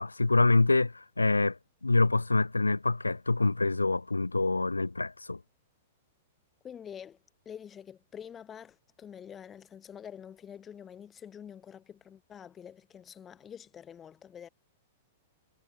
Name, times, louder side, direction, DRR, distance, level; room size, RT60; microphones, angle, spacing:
voice 1, 0.0-5.4, left 3 dB, 85° left, 0.9 m, -26 dB
voice 2, 6.6-7.2 7.5-14.5, left 8 dB, 20° left, 3.8 m, -47 dB
figure-of-eight pair, 100°, 0 cm